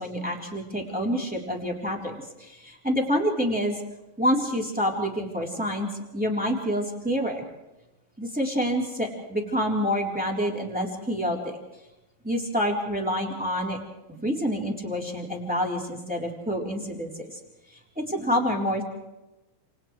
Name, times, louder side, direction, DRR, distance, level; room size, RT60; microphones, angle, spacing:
voice 1, 0.0-3.8 4.2-5.9 6.1-7.4 8.2-11.6 12.2-13.8 14.2-17.3 17.9-18.8, equal, ahead, -1 dB, 2.6 m, -27 dB
29.5 x 28.5 x 3.3 m, 0.99 s
omnidirectional pair, 5.7 m